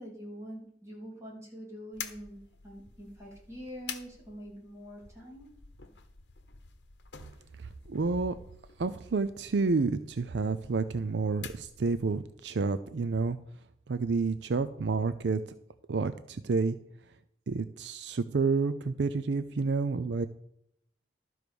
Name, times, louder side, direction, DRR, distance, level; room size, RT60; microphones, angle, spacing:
voice 1, 0.0-5.5, equal, 15° right, -4 dB, 3.5 m, -45 dB
sound 1, 1.9-12.3, left 7 dB, 65° left, 1.0 m, -49 dB
voice 2, 7.9-8.4 8.8-13.4 13.9-15.4 15.9-16.8 17.5-20.3, right 4 dB, 65° right, 12 dB, 0.5 m, -29 dB
12.5 x 4.7 x 6.9 m, 0.74 s
head